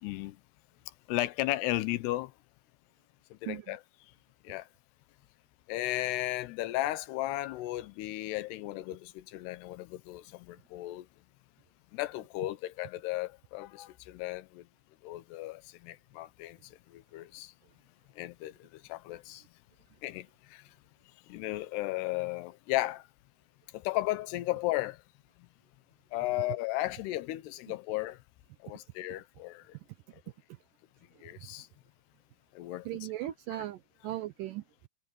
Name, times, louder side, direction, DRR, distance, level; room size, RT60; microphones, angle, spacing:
voice 1, 0.0-0.4 1.1-2.3 3.3-3.8 4.4-4.7 5.7-11.1 11.9-14.6 15.0-16.6 16.9-17.5 18.2-19.4 20.0-20.6 21.3-23.0 23.7-25.0 26.1-28.2 28.6-29.6 31.2-31.7 32.6-32.9, left 17 dB, 85° left, 3.0 m, -35 dB
voice 2, 3.5-3.8 31.2-31.5 32.9-34.9, right 14 dB, 80° right, 2.0 m, -39 dB
omnidirectional pair, 4.7 m